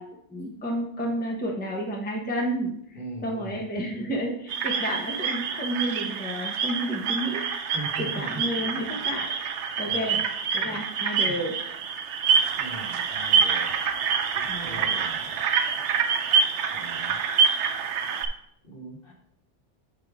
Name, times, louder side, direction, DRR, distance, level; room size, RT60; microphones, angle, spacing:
voice 1, 0.0-7.4 8.0-10.2 10.5-11.5 14.5-14.9, equal, 10° left, -1 dB, 0.8 m, -31 dB
voice 2, 2.9-3.6 7.7-8.4 9.9-10.2 10.6-10.8 11.2-11.4 12.6-13.7 14.3-15.4 16.7-17.2 18.6-19.1, right 2 dB, 50° left, -1 dB, 1.4 m, -40 dB
sound 1, 4.5-18.3, right 6 dB, 75° right, 0.9 m, -26 dB
6.1 x 3.5 x 4.8 m, 0.70 s
omnidirectional pair, 1.2 m